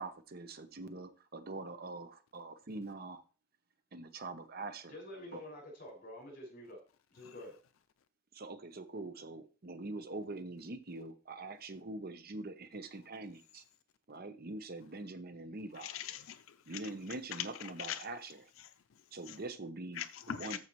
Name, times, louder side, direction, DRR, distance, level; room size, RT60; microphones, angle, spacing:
voice 1, 0.0-3.2 3.9-4.9 5.3-5.4 8.3-13.6 14.1-15.9 16.7-18.3 19.1-20.0 20.4-20.6, right 2 dB, 50° right, 0.9 m, -44 dB
voice 2, 4.9-6.8 7.1-7.6, left 1 dB, 50° left, 5.8 m, -48 dB
voice 3, 15.7-18.1 18.6-19.4 19.9-20.6, left 10 dB, 85° left, 0.4 m, -44 dB
14.0 x 5.6 x 3.1 m
head